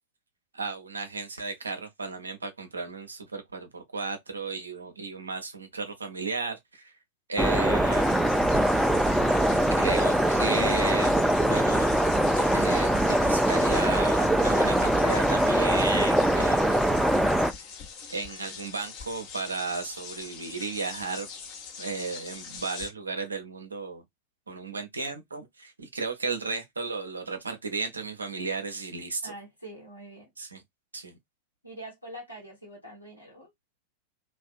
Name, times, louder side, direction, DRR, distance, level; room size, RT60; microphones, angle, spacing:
voice 1, 0.5-6.9 7.3-8.3 9.8-11.2 11.4-11.9 12.2-17.1 17.6-17.7 18.1-21.3 21.8-24.0 24.5-29.3 30.4-30.6 30.9-31.2, right 4 dB, 75° right, 0.6 m, -34 dB
sound 1, 7.4-17.5, right 1 dB, 5° right, 0.3 m, -23 dB
sound 2, 7.9-22.9, left 6 dB, 40° left, 0.7 m, -43 dB
voice 2, 29.2-30.3 31.6-33.5, right 1 dB, 90° left, 0.9 m, -44 dB
2.5 x 2.1 x 2.4 m
figure-of-eight pair, 90°, 0 cm